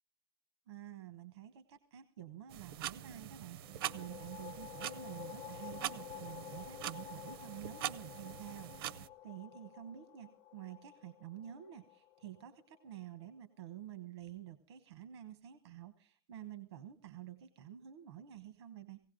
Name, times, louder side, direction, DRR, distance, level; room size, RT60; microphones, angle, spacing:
voice 1, 0.7-19.0, right 11 dB, 90° right, 11 dB, 1.1 m, -50 dB
sound 1, 2.5-9.1, right 12 dB, 60° right, 0.6 m, -44 dB
sound 2, 3.6-13.0, left 12 dB, 35° left, 0.8 m, -51 dB
18.0 x 16.5 x 3.8 m, 0.41 s
supercardioid pair, 180°, 14 cm